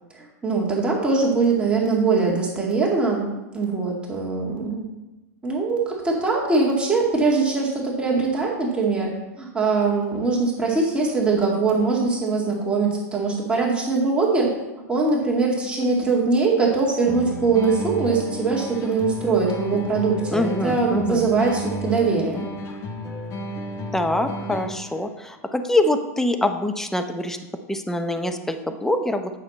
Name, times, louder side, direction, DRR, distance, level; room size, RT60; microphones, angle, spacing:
voice 1, 0.1-3.3 3.5-4.9 5.4-9.1 9.4-14.5 14.9-22.4, right 4 dB, 10° right, -3 dB, 2.0 m, -22 dB
sound 1, 17.1-25.0, equal, 35° left, 1.4 m, -32 dB
voice 2, 20.3-21.2 23.9-27.4 27.7-29.3, left 1 dB, 5° left, 7 dB, 0.7 m, -24 dB
8.6 x 6.6 x 4.1 m, 1.0 s
hypercardioid pair, 115°, 9 cm